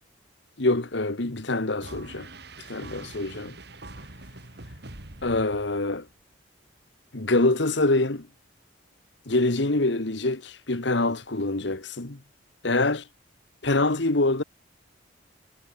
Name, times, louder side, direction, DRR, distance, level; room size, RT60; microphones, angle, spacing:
voice 1, 0.6-2.3 2.7-3.6 5.2-6.0 7.1-8.3 9.3-12.2 12.6-13.0 13.6-14.4, left 2 dB, 65° left, 1.5 m, -25 dB
sound 1, 1.8-6.1, right 2 dB, 55° right, 3.4 m, -44 dB
head